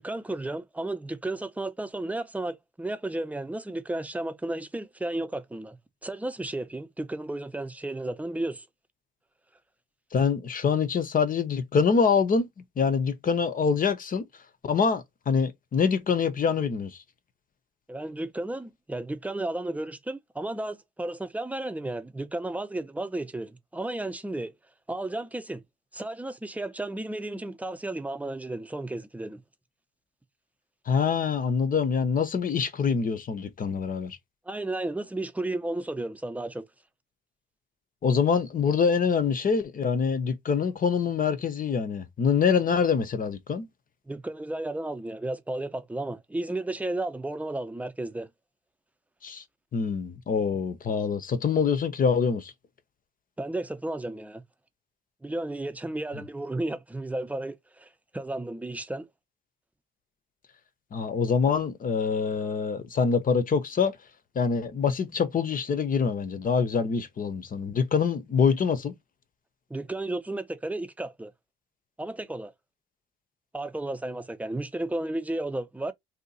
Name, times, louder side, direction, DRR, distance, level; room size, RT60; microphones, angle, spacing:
voice 1, 0.0-8.7 17.9-24.5 24.9-25.6 25.9-29.4 34.5-36.6 44.1-48.3 53.4-54.4 55.2-59.1 69.7-71.3 72.0-72.5 73.5-75.9, right 2 dB, 5° right, 0.6 m, -33 dB
voice 2, 10.1-12.5 12.8-14.2 14.6-16.9 30.9-34.2 38.0-43.7 49.2-49.4 49.7-52.5 60.9-63.9 64.4-68.9, left 6 dB, 45° left, 0.8 m, -25 dB
2.8 x 2.4 x 3.9 m
cardioid pair, 90°, 20 cm